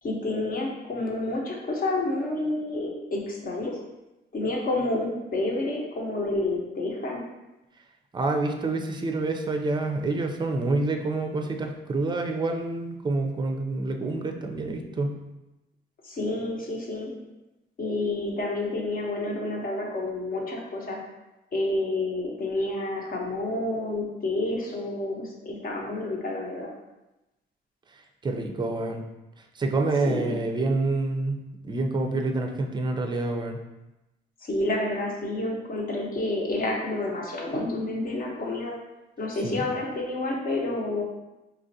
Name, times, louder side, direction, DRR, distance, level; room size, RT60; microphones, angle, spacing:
voice 1, 0.0-3.7 4.3-7.2 16.0-17.1 17.8-21.0 21.5-26.7 30.1-30.4 34.4-38.8 39.2-41.0, left 2 dB, 45° left, -1 dB, 0.9 m, -29 dB
voice 2, 8.1-15.1 28.2-29.0 29.6-33.6 39.4-39.6, right 2 dB, 20° right, 4 dB, 0.4 m, -27 dB
4.2 x 2.4 x 2.7 m, 0.99 s
cardioid pair, 90°, 20 cm